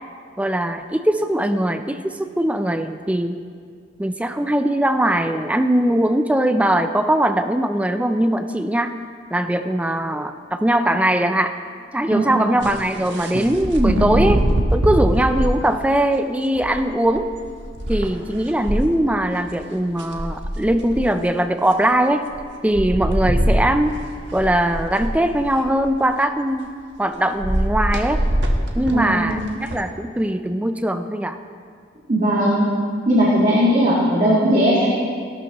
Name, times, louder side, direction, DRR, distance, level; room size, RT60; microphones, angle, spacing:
voice 1, 0.4-3.4 4.0-8.9 9.3-11.5 11.9-14.4 14.7-17.3 17.9-22.3 22.6-24.0 24.3-26.7 27.0-28.2 28.7-31.4, right 1 dB, 5° right, 8 dB, 0.4 m, -20 dB
sound 1, 12.6-15.6 16.6-18.8 19.5-19.6 19.8-21.2 22.3-22.4 22.7-25.9 27.4-29.8, right 1 dB, 70° right, 1.3 m, -23 dB
voice 2, 28.9-29.4 32.1-32.6 33.1-34.9, equal, 40° right, -8 dB, 1.7 m, -18 dB
17.0 x 12.5 x 2.9 m, 2.1 s
head